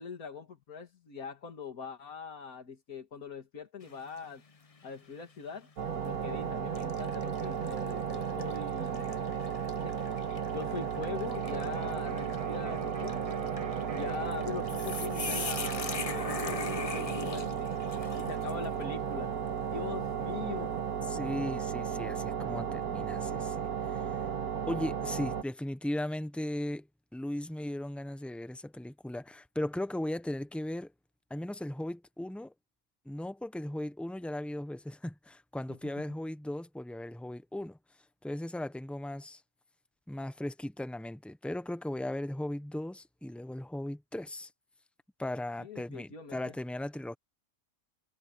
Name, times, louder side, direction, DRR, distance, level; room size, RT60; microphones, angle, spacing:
voice 1, 0.0-4.4 4.8-5.7 6.0-9.2 9.7-10.0 10.5-13.3 13.9-17.7 18.2-19.3 19.7-20.7 35.7-35.8 45.6-46.5, left 5 dB, 80° left, 2.6 m, -42 dB
sound 1, 3.8-4.3 4.8-4.9 5.9-6.1 6.7-18.8, left 4 dB, 30° left, 0.8 m, -41 dB
sound 2, 5.8-25.4, right 7 dB, 90° right, 2.0 m, -34 dB
Electric guitar, 11.4-19.2, right 4 dB, 30° right, 0.8 m, -46 dB
voice 2, 21.1-24.1 24.7-26.9 27.1-30.9 31.3-32.5 33.1-37.8 38.2-39.4 40.1-44.5 45.2-47.1, left 1 dB, ahead, 0.3 m, -37 dB
omnidirectional pair, 1.5 m